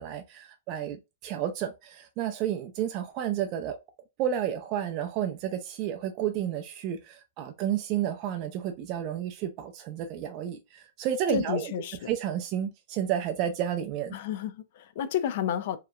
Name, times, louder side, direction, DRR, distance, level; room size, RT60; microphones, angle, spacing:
voice 1, 0.0-3.8 4.2-11.7 12.1-14.1, right 10 dB, 40° right, 0.3 m, -31 dB
voice 2, 11.3-12.1 14.1-15.8, left 9 dB, 55° left, 0.4 m, -31 dB
2.8 x 2.1 x 2.4 m
hypercardioid pair, 145°, 0 cm